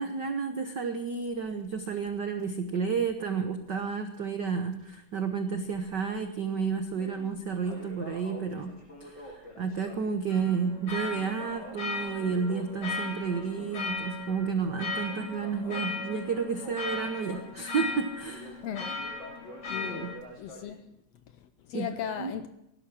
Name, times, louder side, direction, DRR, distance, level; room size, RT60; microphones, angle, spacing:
voice 1, 0.0-8.7 9.0-18.6 19.9-20.1 21.7-22.3, right 5 dB, 80° right, 0.9 m, -31 dB
Crackle, 1.2-3.9 4.1-4.2 4.7-4.8 5.5-6.1 6.5-20.8, equal, 20° left, 7.3 m, -48 dB
sound 1, 10.3-20.2, left 4 dB, 60° left, 3.9 m, -37 dB
voice 2, 18.6-18.9 19.7-20.8 21.4-22.5, left 9 dB, 75° left, 1.6 m, -37 dB
17.5 x 11.5 x 6.1 m
omnidirectional pair, 3.5 m